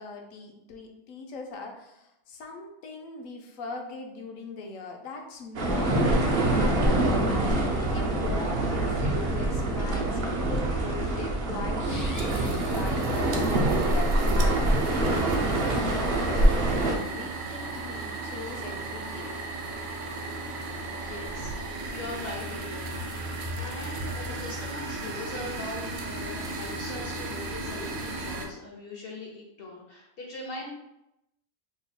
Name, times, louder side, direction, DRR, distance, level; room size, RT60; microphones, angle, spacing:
voice 1, 0.0-19.3, left 3 dB, 75° left, 2 dB, 1.0 m, -40 dB
sound 1, 5.6-17.0, right 1 dB, 60° right, 0.6 m, -25 dB
sound 2, 11.7-13.7, left 1 dB, 25° left, 0.4 m, -45 dB
sound 3, 12.2-28.5, right 2 dB, 75° right, 1.0 m, -35 dB
voice 2, 20.9-23.1 23.6-30.7, left 2 dB, 55° left, -1 dB, 0.7 m, -40 dB
2.9 x 2.3 x 4.1 m, 0.86 s
omnidirectional pair, 1.5 m